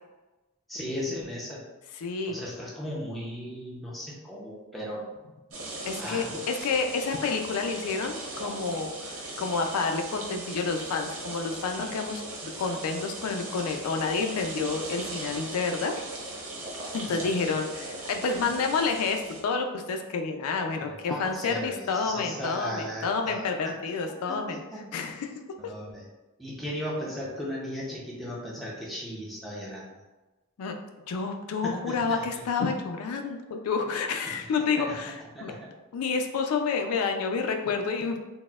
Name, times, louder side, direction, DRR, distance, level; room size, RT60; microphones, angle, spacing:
voice 1, 0.7-1.6 2.3-5.0 6.0-6.4 17.0-17.3 20.7-23.7 24.3-24.8 25.6-26.1 26.4-29.9 31.6-32.4 33.9-34.3 34.8-35.0 35.3-35.6, equal, ahead, -6 dB, 0.5 m, -37 dB
voice 2, 2.0-2.4 5.9-12.2 12.6-15.9 16.9-24.6 24.9-25.3 30.6-30.7 31.1-35.5 35.9-38.2, left 4 dB, 80° left, 5 dB, 0.3 m, -29 dB
sound 1, 5.5-19.4, right 2 dB, 60° right, 0.7 m, -38 dB
4.0 x 2.1 x 2.3 m, 1.1 s
head